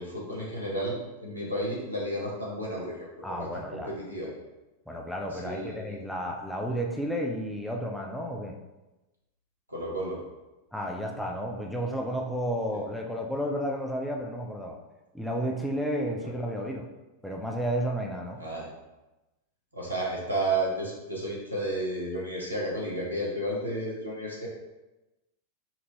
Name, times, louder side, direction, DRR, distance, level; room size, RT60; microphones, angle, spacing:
voice 1, 0.0-4.3 5.3-6.0 9.7-10.2 16.2-16.3 18.4-18.7 19.7-24.5, right 1 dB, 90° right, -5 dB, 1.1 m, -32 dB
voice 2, 3.2-3.9 4.9-8.6 10.7-14.8 15.1-16.9 17.2-18.4, equal, 5° left, 0 dB, 0.5 m, -32 dB
4.3 x 2.6 x 3.0 m, 1.0 s
figure-of-eight pair, 90°, 0 cm